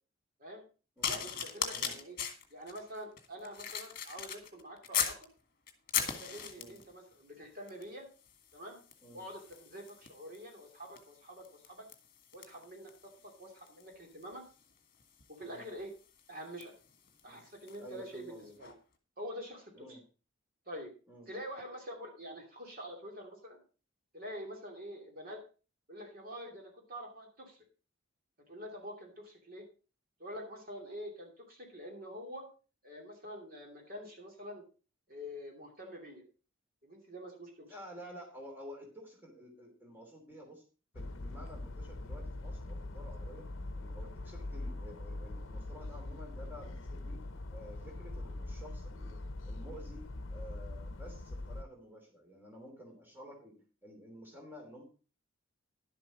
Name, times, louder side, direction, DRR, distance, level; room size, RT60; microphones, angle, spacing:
sound 1, 1.0-5.2 5.7-6.9 7.7-7.9 8.2-17.9 18.6-18.8, left 8 dB, 45° left, 1.8 m, -40 dB
voice 1, 1.1-2.2 2.5-5.3 6.0-8.0 8.5-8.8 9.1-11.9 12.3-14.4 15.3-15.9 16.3-16.7 17.2-18.7 19.2-20.0 20.7-20.9 21.3-23.6 24.1-25.4 25.9-27.6 28.5-29.6 30.2-32.4 32.8-34.6 35.1-36.2 36.8-37.7, equal, 45° right, 1 dB, 2.7 m, -46 dB
voice 2, 17.8-18.5 19.7-20.0 21.1-21.3 37.6-40.6 40.9-43.5 43.8-47.2 47.5-53.5 53.8-54.8, equal, 10° right, 0 dB, 3.1 m, -51 dB
sound 2, 40.9-51.6, left 2 dB, 70° left, 0.8 m, -42 dB
11.5 x 7.6 x 5.0 m, 0.35 s
head